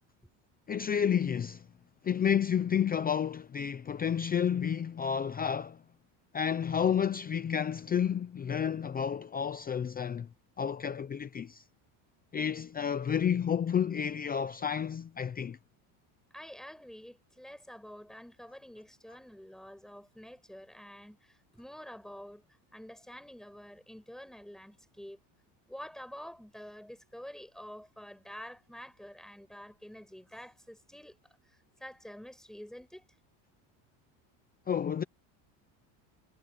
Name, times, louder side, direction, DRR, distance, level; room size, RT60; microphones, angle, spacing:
voice 1, 0.7-1.6 2.0-5.8 6.3-10.3 10.6-11.6 12.3-15.6 34.7-35.0, left 8 dB, 20° left, 0.6 m, -30 dB
voice 2, 16.3-22.4 22.7-25.2 25.7-31.2 31.8-33.0, equal, ahead, 7.6 m, -48 dB
cardioid pair, 155°, 46 cm